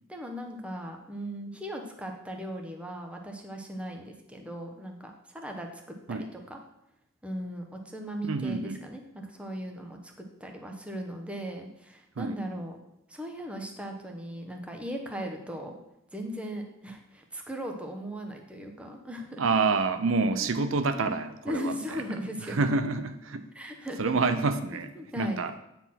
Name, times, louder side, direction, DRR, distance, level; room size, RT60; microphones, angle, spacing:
voice 1, 0.1-5.8 6.1-6.6 7.2-12.8 13.1-15.8 16.1-19.4 20.9-21.1 21.4-22.6 23.5-24.1 24.9-25.4, equal, 5° right, 2 dB, 1.0 m, -38 dB
voice 2, 8.2-8.8 12.2-12.4 19.4-22.0 22.5-23.5 24.0-24.9 25.2-25.5, right 4 dB, 85° right, 9 dB, 0.6 m, -27 dB
9.1 x 4.4 x 5.8 m, 0.84 s
head